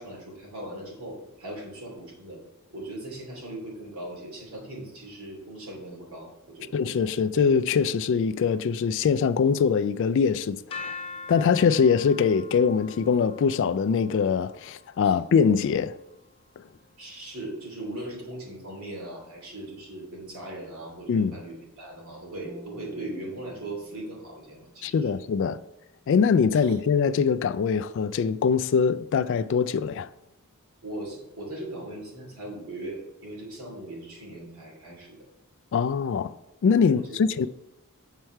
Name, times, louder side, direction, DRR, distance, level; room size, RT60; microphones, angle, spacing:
voice 1, 0.0-2.4 2.7-6.7 15.0-15.1 17.0-25.1 26.6-26.7 30.8-35.2 36.9-37.5, right 1 dB, 65° right, 2.7 m, -39 dB
voice 2, 6.7-11.0 11.3-15.9 21.1-21.4 24.8-25.6 26.1-30.1 35.7-36.3 36.6-37.5, left 6 dB, 55° left, 0.3 m, -23 dB
sound 1, 10.7-16.6, left 4 dB, 25° left, 0.7 m, -44 dB
sound 2, 22.4-25.8, equal, 10° right, 0.5 m, -52 dB
8.1 x 4.6 x 4.4 m
head